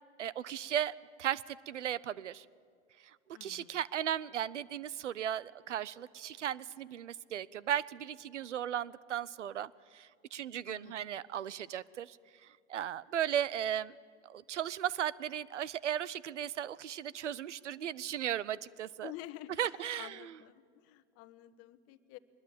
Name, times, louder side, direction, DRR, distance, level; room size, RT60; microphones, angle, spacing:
voice 1, 0.2-2.5 3.0-3.2 3.4-12.2 12.4-14.0 14.2-19.1 19.6-20.2, right 10 dB, 85° right, 21 dB, 0.7 m, -36 dB
voice 2, 3.3-3.8 10.6-11.1 19.0-22.2, left 15 dB, 45° left, 12 dB, 1.2 m, -50 dB
22.5 x 20.5 x 7.5 m, 2.1 s
hypercardioid pair, 105°, 35 cm